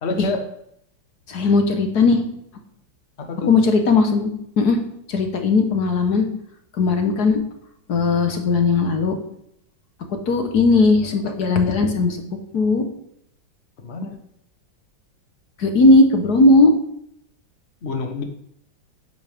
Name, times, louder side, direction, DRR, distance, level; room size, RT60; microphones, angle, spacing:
voice 1, 0.0-0.5 3.2-3.5 13.8-14.2 17.8-18.2, left 3 dB, 40° left, 5 dB, 1.2 m, -27 dB
voice 2, 1.3-2.2 3.4-4.3 4.6-4.8 5.1-6.3 6.8-7.4 7.9-9.2 10.3-12.2 12.5-12.8 15.6-16.7, left 3 dB, 55° left, 5 dB, 1.6 m, -17 dB
11.0 x 9.3 x 3.6 m, 0.73 s
omnidirectional pair, 2.1 m